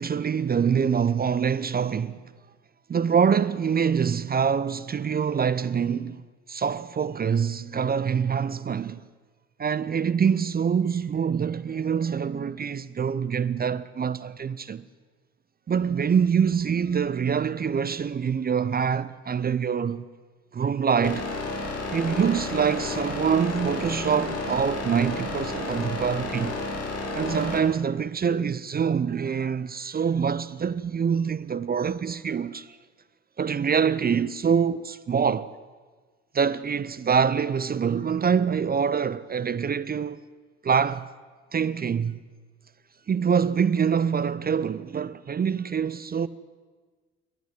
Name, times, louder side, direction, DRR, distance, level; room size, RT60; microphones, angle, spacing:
voice 1, 0.0-2.2 2.9-6.2 6.5-9.0 9.6-14.8 15.7-20.1 20.5-21.3 21.9-26.6 27.2-32.8 33.4-35.5 36.3-40.2 40.6-41.1 41.5-42.2 43.1-46.3, right 7 dB, 30° right, 0.7 m, -25 dB
sound 1, 21.0-27.6, left 2 dB, 50° left, 3.6 m, -31 dB
28.5 x 12.5 x 7.5 m
hypercardioid pair, 50°, 31 cm